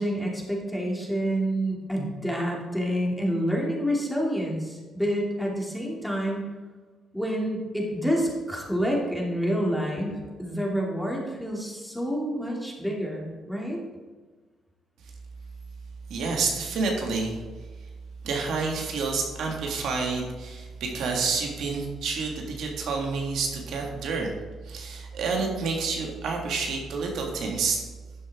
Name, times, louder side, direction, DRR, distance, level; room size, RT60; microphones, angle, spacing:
voice 1, 0.0-6.5 7.1-13.8, equal, ahead, -2 dB, 2.6 m, -28 dB
voice 2, 16.1-17.4 18.2-24.3 24.6-27.8, right 4 dB, 75° right, 0 dB, 1.9 m, -29 dB
12.0 x 7.3 x 3.6 m, 1.3 s
cardioid pair, 90°, 0 cm